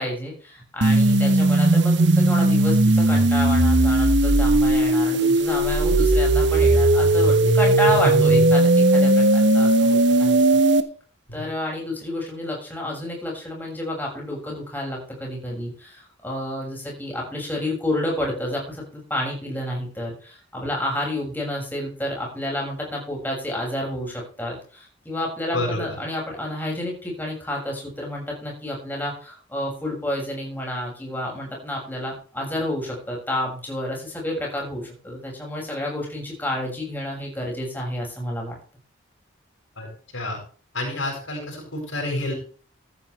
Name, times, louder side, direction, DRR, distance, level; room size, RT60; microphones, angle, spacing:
voice 1, 0.0-10.4 11.3-38.6, left 1 dB, 10° left, -2 dB, 6.9 m, -30 dB
sound 1, 0.8-10.8, right 2 dB, 60° right, 1.3 m, -17 dB
voice 2, 7.8-8.4 11.3-11.4 25.5-26.0 39.8-40.4 40.7-42.3, left 1 dB, 75° left, 0 dB, 7.4 m, -28 dB
14.5 x 12.5 x 3.5 m, 0.40 s
head